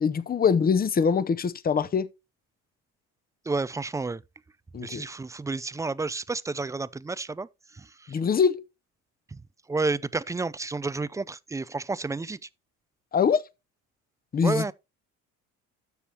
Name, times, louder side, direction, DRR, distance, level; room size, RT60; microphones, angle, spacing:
voice 1, 0.0-2.1 4.7-5.0 8.1-8.6 13.1-13.4 14.3-14.7, left 6 dB, 25° left, 0.8 m, -23 dB
voice 2, 3.5-4.2 4.8-7.5 7.8-8.2 9.7-12.4 14.4-14.7, right 3 dB, 10° right, 0.4 m, -30 dB
12.5 x 6.7 x 2.8 m
supercardioid pair, 85°, 35 cm